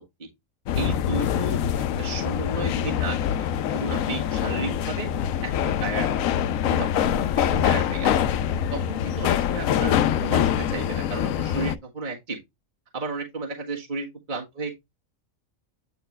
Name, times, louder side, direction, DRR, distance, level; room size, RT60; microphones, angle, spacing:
sound 1, 0.7-11.7, left 9 dB, 80° left, 1.0 m, -24 dB
voice 1, 0.7-1.6 2.0-5.1 5.4-6.4 6.7-8.1 8.7-9.9 10.2-12.4 12.9-14.7, right 3 dB, 35° right, 1.7 m, -33 dB
9.5 x 4.4 x 3.2 m
omnidirectional pair, 1.4 m